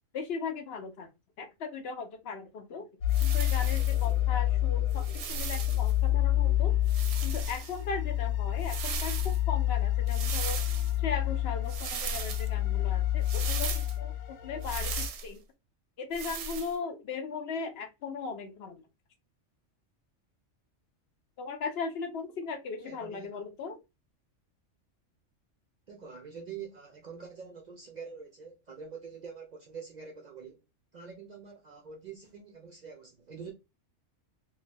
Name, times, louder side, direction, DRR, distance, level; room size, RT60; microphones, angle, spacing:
voice 1, 0.1-1.1 1.4-2.9 3.2-6.8 7.2-10.6 11.0-15.4 16.0-18.8 21.4-23.8, left 5 dB, 60° left, 0.7 m, -38 dB
sound 1, 3.0-15.1, left 13 dB, 85° left, 1.0 m, -29 dB
sound 2, 3.1-4.1 4.9-5.9 6.9-7.8 8.6-9.4 10.1-10.9 11.7-12.5 13.2-13.9 14.6-15.3 16.1-16.7, right 5 dB, 90° right, 1.0 m, -37 dB
voice 2, 22.8-23.4 25.9-30.6 30.9-33.5, right 6 dB, 55° right, 0.5 m, -45 dB
2.7 x 2.3 x 3.2 m
omnidirectional pair, 1.3 m